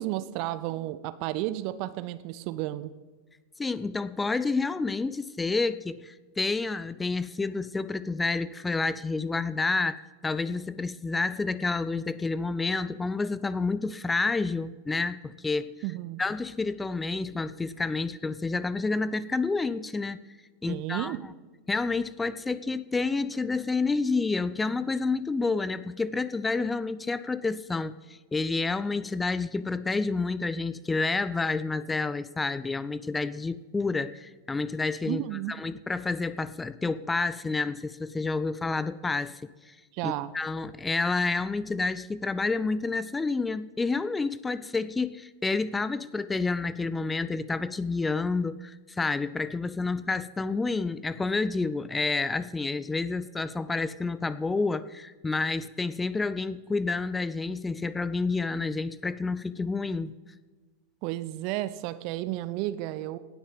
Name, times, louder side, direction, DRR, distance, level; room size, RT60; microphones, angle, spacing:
voice 1, 0.0-2.9 15.8-16.2 20.7-21.2 35.1-35.5 39.9-40.3 61.0-63.2, right 15 dB, 45° right, 14 dB, 0.6 m, -32 dB
voice 2, 3.6-15.7 16.2-20.2 20.6-21.2 21.7-35.2 35.5-39.4 39.7-39.8 40.0-60.1, left 3 dB, 10° left, 16 dB, 0.4 m, -29 dB
18.5 x 6.3 x 5.2 m, 1.3 s
figure-of-eight pair, 90°, 0 cm